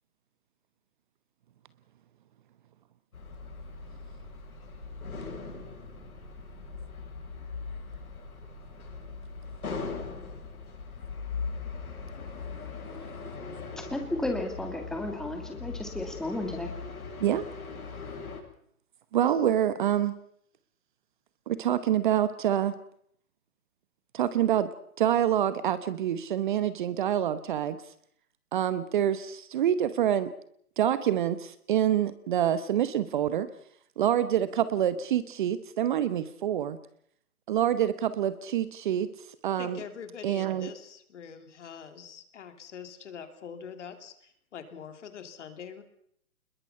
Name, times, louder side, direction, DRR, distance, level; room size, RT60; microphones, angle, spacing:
sound 1, 3.1-18.4, left 4 dB, 80° left, 7.9 m, -40 dB
voice 1, 13.8-16.7, left 1 dB, ahead, 3 dB, 2.0 m, -33 dB
voice 2, 19.1-20.1 21.5-22.7 24.1-24.7 25.0-27.8 28.5-30.3 30.8-33.5 34.0-36.8 37.5-39.1 39.4-39.8 40.2-40.7, right 10 dB, 35° right, 14 dB, 1.0 m, -26 dB
voice 3, 39.6-45.8, left 7 dB, 55° left, 8 dB, 3.2 m, -44 dB
26.0 x 21.5 x 5.6 m, 0.65 s
hypercardioid pair, 145°, 43 cm